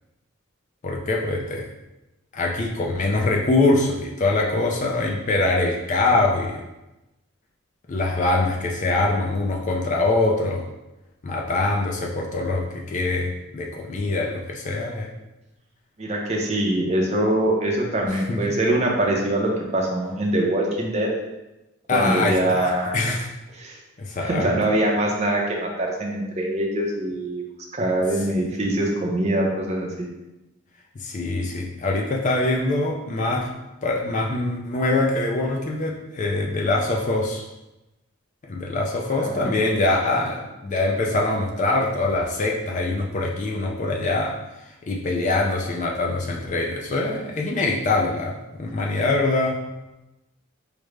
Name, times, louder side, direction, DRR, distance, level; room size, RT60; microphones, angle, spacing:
voice 1, 0.8-1.7 2.3-6.6 7.9-10.7 11.2-15.1 18.3-18.4 21.9-23.3 24.0-24.5 31.0-33.5 33.8-37.4 38.4-44.3 44.8-49.6, left 2 dB, 35° left, 0 dB, 0.3 m, -23 dB
voice 2, 16.0-21.1 21.9-23.0 23.5-23.8 24.2-27.5 27.7-30.1 39.1-39.5, right 1 dB, 30° right, -1 dB, 0.5 m, -23 dB
4.9 x 2.1 x 3.2 m, 0.98 s
head